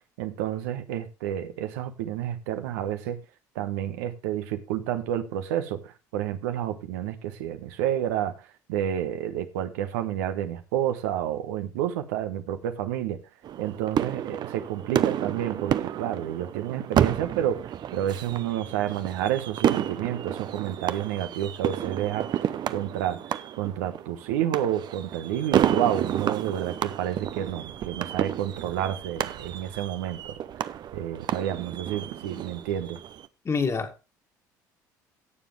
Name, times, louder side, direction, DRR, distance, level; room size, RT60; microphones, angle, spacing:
voice 1, 0.2-3.2 3.5-13.2 13.6-22.4 22.7-23.2 23.6-30.4 30.9-33.0, right 11 dB, 75° right, 1.2 m, -30 dB
sound 1, 13.4-33.3, right 10 dB, 50° right, 0.8 m, -30 dB
voice 2, 33.4-34.0, left 5 dB, 30° left, 2.3 m, -27 dB
17.0 x 7.1 x 3.3 m
hypercardioid pair, 60°, 9 cm